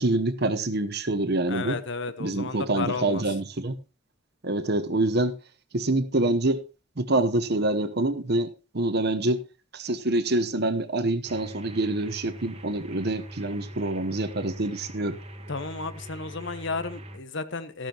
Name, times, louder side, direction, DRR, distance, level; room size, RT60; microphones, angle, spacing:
voice 1, 0.0-1.8 2.2-3.8 4.4-5.4 5.7-6.6 7.0-9.4 9.7-15.1, right 2 dB, 50° right, 1.0 m, -26 dB
voice 2, 1.5-3.2 15.5-17.9, left 4 dB, 60° left, 1.0 m, -33 dB
sound 1, 11.2-17.2, equal, 30° right, 1.4 m, -42 dB
14.0 x 12.0 x 3.0 m
head